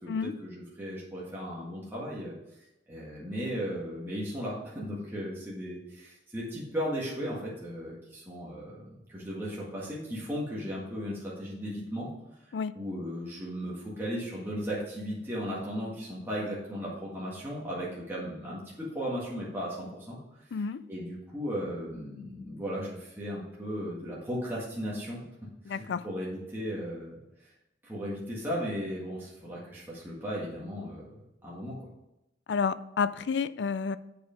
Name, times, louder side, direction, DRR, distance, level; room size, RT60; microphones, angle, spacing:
voice 1, 0.4-2.3 2.9-8.8 9.1-12.1 12.7-20.2 20.9-25.2 25.7-27.5 27.8-31.1 31.4-31.9, equal, 10° right, -7 dB, 1.7 m, -36 dB
voice 2, 20.5-20.9 25.7-26.1 32.5-34.0, left 5 dB, 70° left, 15 dB, 0.4 m, -30 dB
8.0 x 5.0 x 5.1 m, 0.92 s
head